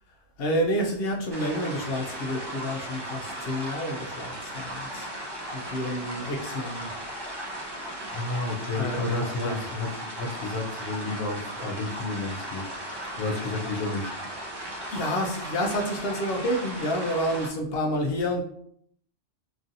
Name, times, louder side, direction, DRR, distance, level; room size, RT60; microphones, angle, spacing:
voice 1, 0.4-5.1 5.5-6.9 8.8-9.6 14.9-18.4, equal, 60° left, 1 dB, 0.7 m, -29 dB
sound 1, 1.3-17.5, right 1 dB, 35° right, 0.4 m, -36 dB
voice 2, 8.1-14.1, left 2 dB, 85° left, 1 dB, 1.0 m, -31 dB
3.0 x 2.6 x 2.5 m, 0.67 s
omnidirectional pair, 1.3 m